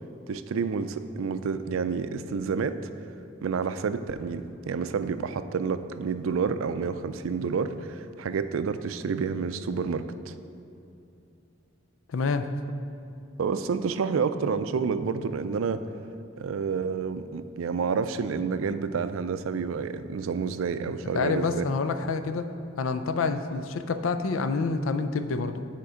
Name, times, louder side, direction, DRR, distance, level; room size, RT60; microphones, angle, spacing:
voice 1, 0.3-2.8 3.4-10.3 13.4-15.8 16.4-21.7, right 5 dB, 90° right, 11 dB, 0.4 m, -29 dB
voice 2, 12.1-12.5 21.1-22.5 22.8-25.7, left 4 dB, 80° left, 10 dB, 0.4 m, -27 dB
9.5 x 4.4 x 5.0 m, 2.7 s
head